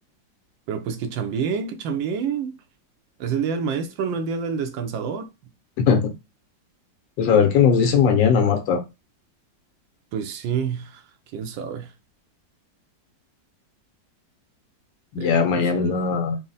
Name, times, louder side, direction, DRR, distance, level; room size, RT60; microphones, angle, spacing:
voice 1, 0.7-2.5 3.2-5.3 10.1-10.9 11.3-11.9 15.2-16.1, right 6 dB, 85° right, 1.4 m, -28 dB
voice 2, 7.2-8.8 15.1-16.4, left 6 dB, 85° left, 1.5 m, -19 dB
4.3 x 2.0 x 3.9 m
omnidirectional pair, 2.0 m